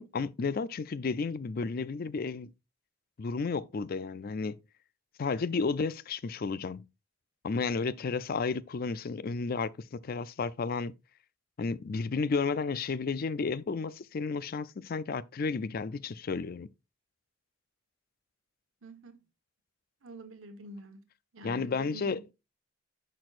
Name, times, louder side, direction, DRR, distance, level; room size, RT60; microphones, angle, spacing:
voice 1, 0.0-2.5 3.2-4.6 5.2-6.8 7.4-10.9 11.6-16.7 21.4-22.3, left 4 dB, 45° left, 0.4 m, -32 dB
voice 2, 18.8-19.2 20.0-21.0 21.3-22.2, right 1 dB, 85° right, 1.3 m, -47 dB
10.5 x 6.1 x 2.5 m
head